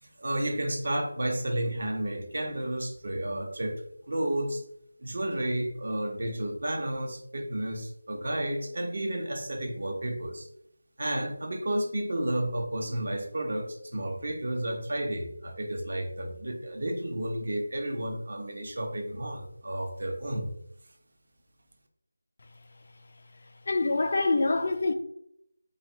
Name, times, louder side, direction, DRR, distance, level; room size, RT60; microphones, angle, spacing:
voice 1, 0.0-4.6 5.0-10.5 11.0-20.5, right 1 dB, 55° right, 0.9 m, -32 dB
voice 2, 23.7-24.9, left 3 dB, 45° left, 0.4 m, -25 dB
3.3 x 2.3 x 3.9 m
figure-of-eight pair, 170°, 0 cm